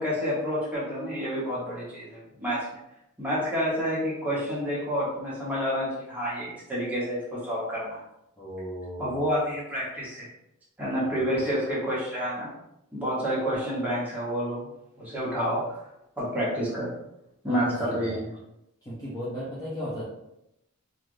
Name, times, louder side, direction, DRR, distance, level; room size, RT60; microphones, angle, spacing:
voice 1, 0.0-2.6 3.2-8.0 9.0-10.3 10.8-12.5 12.9-14.7 15.0-15.8 16.2-16.9 17.4-18.3, equal, 5° right, -8 dB, 1.0 m, -29 dB
voice 2, 8.4-9.4 11.0-11.2 17.4-18.2 18.8-20.0, equal, 15° left, -8 dB, 0.6 m, -36 dB
3.2 x 2.5 x 2.5 m, 0.84 s
head